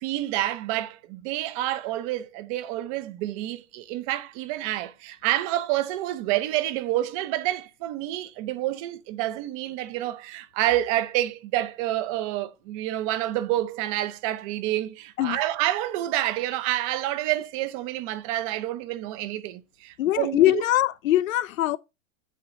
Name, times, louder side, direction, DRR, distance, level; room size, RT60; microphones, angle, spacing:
voice 1, 0.0-20.6, right 14 dB, 25° right, 0.7 m, -28 dB
voice 2, 20.0-21.8, left 14 dB, 85° left, 0.6 m, -22 dB
8.5 x 4.0 x 6.6 m
supercardioid pair, 160°, 39 cm